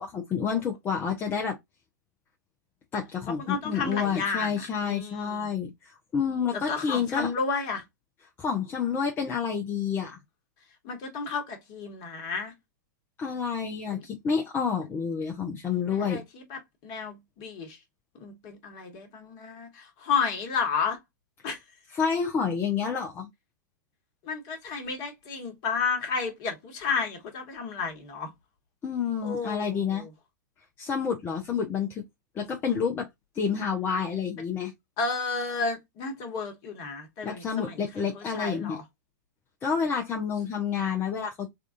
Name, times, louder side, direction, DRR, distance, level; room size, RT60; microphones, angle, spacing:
voice 1, 0.0-1.6 2.9-7.3 8.4-10.2 13.2-16.2 21.9-23.3 28.8-30.0 30.8-32.0 32.3-33.1 33.3-34.7 37.2-38.8 39.6-41.5, left 6 dB, 20° left, 0.6 m, -29 dB
voice 2, 3.4-5.5 6.5-7.8 10.8-12.5 13.9-14.0 15.9-17.8 18.1-21.0 21.4-21.6 24.2-28.3 29.2-30.1 35.0-38.8, left 5 dB, 40° left, 1.2 m, -32 dB
3.5 x 2.4 x 2.5 m
figure-of-eight pair, 95°, 10 cm